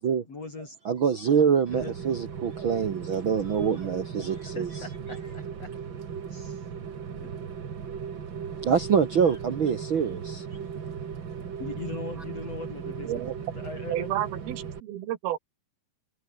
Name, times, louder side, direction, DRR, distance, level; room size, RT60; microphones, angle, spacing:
voice 1, 0.3-0.8 1.7-1.9 4.6-5.7 6.3-6.7 7.2-7.3 11.6-13.2 13.5-14.1, left 3 dB, 40° left, 7.3 m, -39 dB
voice 2, 0.8-4.7 8.6-10.5, right 7 dB, 65° right, 1.2 m, -25 dB
Rain, 1.7-14.8, right 7 dB, 40° right, 1.9 m, -37 dB
voice 3, 13.0-13.4 13.9-15.4, right 12 dB, 85° right, 3.3 m, -31 dB
omnidirectional pair, 4.4 m